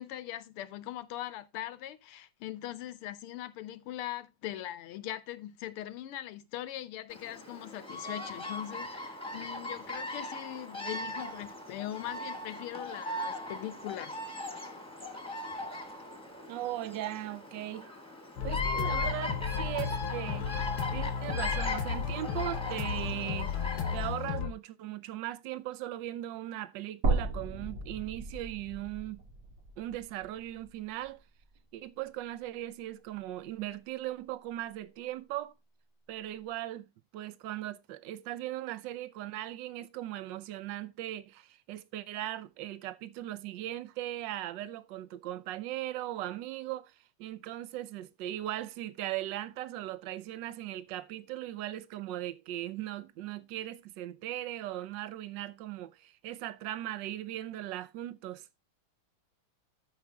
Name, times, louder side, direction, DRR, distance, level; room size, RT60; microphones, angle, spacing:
voice 1, 0.0-14.2, left 13 dB, 85° left, 1.7 m, -41 dB
Bird vocalization bird call bird song, 7.1-24.4, left 2 dB, 5° left, 1.2 m, -39 dB
voice 2, 16.5-17.9 18.4-20.5 20.9-23.5 23.9-29.2 29.8-31.2 31.7-35.5 36.1-36.9 37.1-58.5, right 14 dB, 65° right, 1.3 m, -38 dB
sound 1, 18.4-24.5, left 7 dB, 60° left, 1.2 m, -34 dB
sound 2, 27.0-31.2 31.6-31.7 33.1-33.2, right 3 dB, 85° right, 3.5 m, -35 dB
13.0 x 5.0 x 3.4 m
omnidirectional pair, 2.4 m